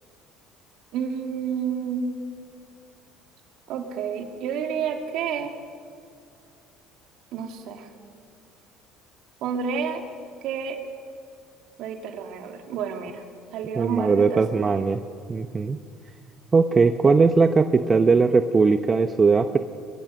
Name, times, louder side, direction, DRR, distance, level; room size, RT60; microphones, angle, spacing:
voice 1, 0.9-2.1 3.7-5.5 7.3-7.9 9.4-10.0 10.4-10.8 11.8-13.2 13.5-14.9, right 7 dB, 65° right, 4 dB, 2.6 m, -30 dB
voice 2, 13.8-15.0 15.3-15.8 16.5-19.6, right 4 dB, 30° right, 9 dB, 0.9 m, -19 dB
22.5 x 22.0 x 6.6 m, 2.3 s
hypercardioid pair, 65°, 0 cm